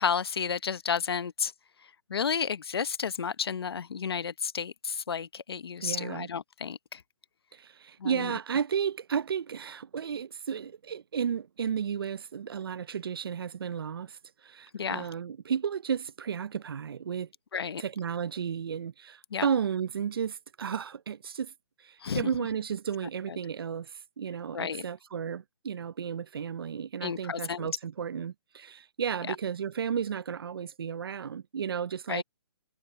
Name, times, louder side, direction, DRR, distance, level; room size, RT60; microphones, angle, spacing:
voice 1, 0.0-1.5 2.1-7.0 8.0-8.3 14.7-15.1 17.5-17.8 19.3-19.5 22.0-22.2 24.5-24.8 27.0-27.7 29.3-29.4 32.1-32.2, left 6 dB, 70° left, 1.0 m, -32 dB
voice 2, 5.8-6.3 7.5-17.3 17.8-21.5 21.8-32.2, right 7 dB, 60° right, 0.6 m, -33 dB
hypercardioid pair, 170°, 14 cm